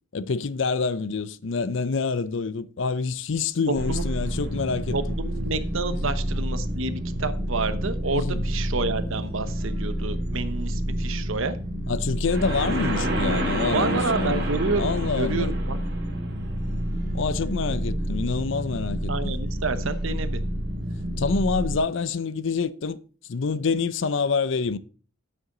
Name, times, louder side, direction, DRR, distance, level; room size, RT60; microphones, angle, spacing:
voice 1, 0.1-5.0 8.1-8.4 11.9-14.4 14.8-15.5 17.1-19.3 21.2-23.0 23.3-24.8, left 4 dB, 65° left, 0.5 m, -26 dB
sound 1, 3.7-21.8, equal, 50° right, 2.4 m, -28 dB
voice 2, 4.9-11.6 13.7-15.8 19.1-20.4, right 3 dB, 75° right, 0.9 m, -29 dB
9.4 x 7.8 x 3.8 m
head